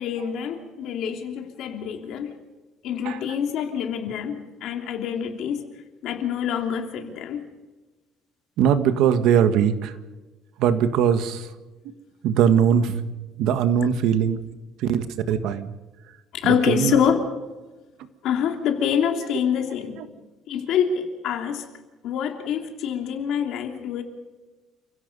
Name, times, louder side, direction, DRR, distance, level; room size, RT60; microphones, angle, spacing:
voice 1, 0.0-2.4 2.8-5.6 6.0-7.5 16.4-17.2 18.2-20.0 20.5-21.6 22.0-24.0, left 8 dB, 55° left, 4 dB, 3.2 m, -26 dB
voice 2, 8.6-9.9 10.6-11.4 12.2-13.0 13.4-14.4 14.9-15.7 16.7-16.9, right 8 dB, 65° right, 10 dB, 1.6 m, -20 dB
29.5 x 16.5 x 5.5 m, 1.2 s
cardioid pair, 175°, 0 cm